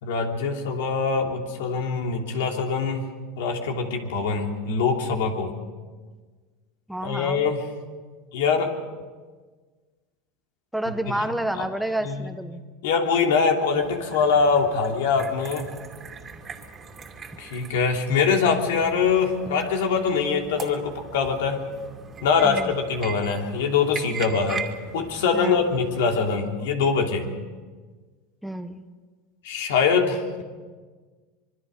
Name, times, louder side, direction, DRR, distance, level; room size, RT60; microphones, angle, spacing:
voice 1, 0.0-3.0 3.4-5.5 7.0-7.6 8.3-8.7 11.1-11.3 11.5-11.7 12.0-12.3 12.8-15.7 17.4-21.6 22.2-24.6 24.9-27.3 29.4-30.4, left 5 dB, 80° left, 3 dB, 3.0 m, -23 dB
voice 2, 6.9-7.5 10.7-12.6 22.4-22.7 25.3-25.6 28.4-28.8, right 1 dB, ahead, 8 dB, 1.0 m, -29 dB
sound 1, 13.8-26.3, right 6 dB, 25° right, 2.4 m, -40 dB
25.5 x 22.5 x 5.2 m, 1.4 s
supercardioid pair, 130°, 0 cm